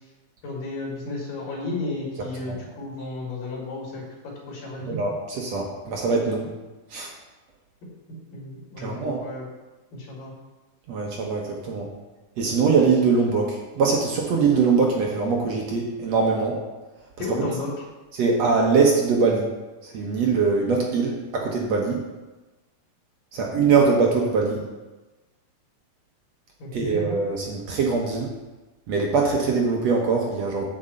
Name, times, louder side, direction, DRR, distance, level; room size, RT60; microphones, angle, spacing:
voice 1, 0.4-4.0 4.5-5.0 8.3-9.5 9.9-10.3 17.2-17.7 26.6-27.0, left 3 dB, 70° left, -4 dB, 3.9 m, -33 dB
voice 2, 4.9-6.5 6.9-7.1 8.8-9.2 10.9-11.9 12.4-16.6 18.1-19.4 19.8-22.0 23.3-24.6 26.7-28.3 28.9-30.8, right 4 dB, 60° right, 0 dB, 1.9 m, -22 dB
9.4 x 5.4 x 7.7 m, 1.1 s
omnidirectional pair, 4.0 m